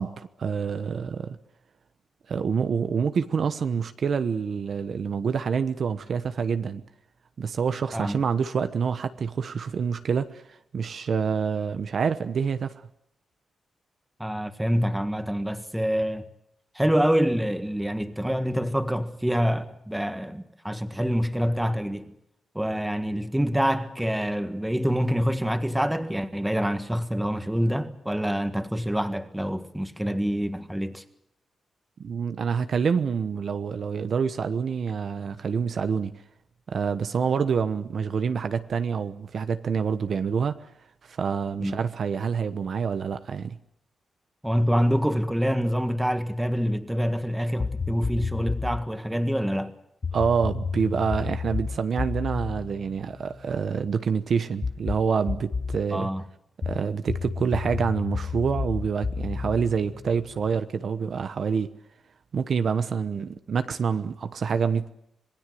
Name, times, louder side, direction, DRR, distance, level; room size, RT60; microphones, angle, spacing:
voice 1, 0.0-1.4 2.3-6.8 7.4-10.4 10.7-12.7 32.0-36.1 36.7-40.6 41.0-43.6 50.1-56.1 56.6-61.7 62.3-64.9, right 6 dB, 55° right, 1.1 m, -27 dB
voice 2, 14.2-16.2 16.7-22.1 22.5-31.0 41.6-41.8 44.4-49.7 55.9-56.2, equal, 5° right, 1.7 m, -26 dB
sound 1, 47.6-48.9 50.0-53.7 54.6-55.9 56.6-60.5, left 5 dB, 35° left, 0.8 m, -31 dB
26.5 x 20.0 x 7.8 m
wide cardioid pair, 130°, 0 cm